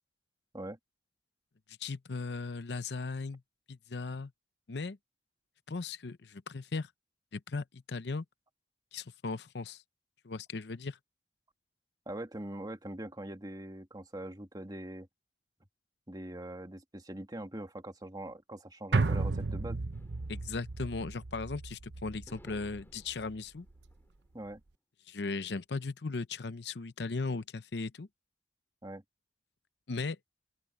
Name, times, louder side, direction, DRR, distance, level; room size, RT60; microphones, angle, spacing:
voice 1, 1.8-3.4 3.7-4.3 4.7-5.0 5.7-6.9 7.3-8.2 8.9-9.8 10.2-11.0 20.3-23.7 25.1-28.1 29.9-30.2, left 4 dB, 70° left, 0.7 m, -37 dB
voice 2, 12.1-15.1 16.1-19.8 24.3-24.6 28.8-29.0, right 1 dB, 25° right, 2.1 m, -42 dB
sound 1, 18.9-23.4 23.7-23.8, right 3 dB, 85° right, 0.8 m, -34 dB
sound 2, 19.9-21.7 22.3-24.5, equal, 15° left, 5.0 m, -61 dB
open air
head